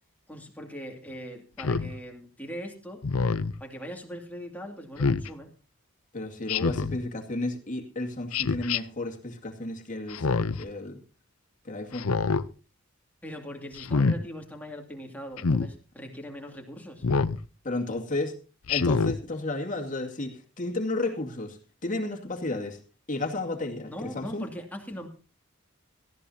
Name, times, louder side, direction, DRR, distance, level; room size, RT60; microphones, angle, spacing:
voice 1, 0.3-3.0 3.6-5.5 13.2-17.0 23.9-25.1, equal, 10° left, 2 dB, 2.4 m, -40 dB
Speech synthesizer, 1.6-1.9 3.0-3.5 5.0-5.3 6.5-7.0 8.3-8.8 10.1-10.6 11.9-12.4 13.8-14.2 15.4-15.7 17.0-17.4 18.7-19.2, left 4 dB, 85° left, 0.7 m, -25 dB
voice 2, 6.1-11.0 11.6-12.1 17.6-18.4 18.7-22.8 23.1-24.4, left 2 dB, 35° left, 2 dB, 2.3 m, -32 dB
18.0 x 14.5 x 2.8 m, 0.36 s
head